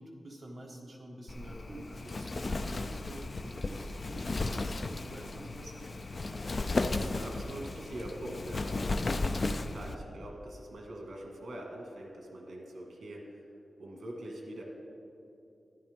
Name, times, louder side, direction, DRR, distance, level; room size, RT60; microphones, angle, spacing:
voice 1, 0.0-6.5, right 1 dB, 35° right, -1 dB, 1.5 m, -47 dB
Wind, 1.3-10.0, left 3 dB, 40° left, 0.4 m, -35 dB
voice 2, 6.9-9.0 9.5-13.4 13.8-14.6, right 1 dB, 70° right, 0 dB, 1.7 m, -43 dB
13.0 x 11.0 x 3.6 m, 2.7 s
wide cardioid pair, 145°, 0 cm